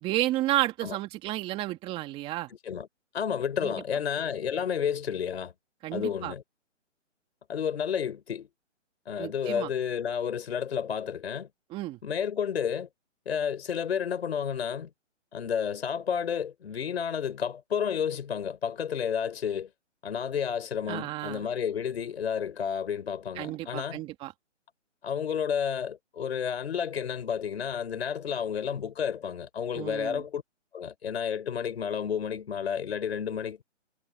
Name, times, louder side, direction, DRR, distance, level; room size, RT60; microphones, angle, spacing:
voice 1, 0.0-2.5 3.6-3.7 5.8-6.3 9.2-9.7 11.7-12.0 20.9-21.5 23.4-24.3 29.7-30.3, right 16 dB, 15° right, 2.7 m, -31 dB
voice 2, 3.1-5.5 5.9-6.4 7.5-8.5 9.1-11.5 12.0-12.9 13.3-14.9 15.3-19.7 20.0-24.0 25.0-30.4 30.7-33.6, left 7 dB, 55° left, 5.4 m, -31 dB
hypercardioid pair, 160°, 37 cm